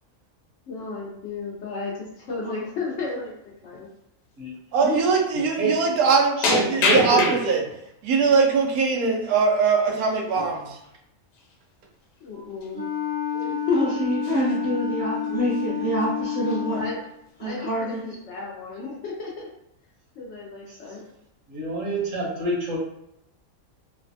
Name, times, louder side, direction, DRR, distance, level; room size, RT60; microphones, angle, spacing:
voice 1, 0.7-3.3 3.6-3.9 12.2-12.8 13.7-13.9 16.8-17.0 17.4-19.5 20.2-21.0, left 4 dB, 60° left, -3 dB, 0.8 m, -32 dB
sound 1, 2.3-2.6 2.9-3.2 3.7-3.8 4.9-5.0 5.3-5.5 6.4-7.8 8.2-8.9 10.3-10.6 10.8-10.9 11.3-11.5 12.2-12.3 12.6-12.8 13.3-13.8 14.1-14.7 15.2-15.7 16.0-16.1 16.4-17.1 17.5-18.0, left 3 dB, 85° left, 1.1 m, -28 dB
voice 2, 4.7-7.6 8.0-10.7, right 5 dB, 90° right, 1 dB, 1.1 m, -21 dB
voice 3, 6.4-7.4 13.3-13.5 21.5-22.8, right 3 dB, 65° right, -3 dB, 1.2 m, -26 dB
Wind instrument woodwind instrument, 12.7-17.0, left 8 dB, 35° right, 0.6 m, -29 dB
voice 4, 13.4-16.8 17.4-18.1, right 1 dB, 30° left, -7 dB, 0.9 m, -27 dB
3.1 x 2.1 x 2.6 m, 0.81 s
omnidirectional pair, 1.5 m